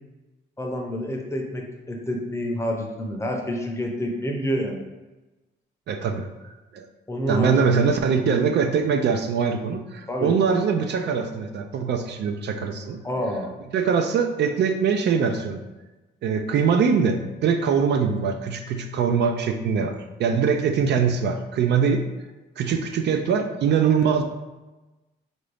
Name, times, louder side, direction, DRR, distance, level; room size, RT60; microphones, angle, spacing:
voice 1, 0.6-4.8 7.1-7.8 10.1-10.3 13.0-13.5, equal, 15° left, 1 dB, 0.7 m, -28 dB
voice 2, 5.9-6.8 7.3-13.0 13.7-15.6 16.2-22.0 22.6-24.2, right 6 dB, 60° right, 5 dB, 0.4 m, -22 dB
3.7 x 2.6 x 3.3 m, 1.1 s
cardioid pair, 90°, 20 cm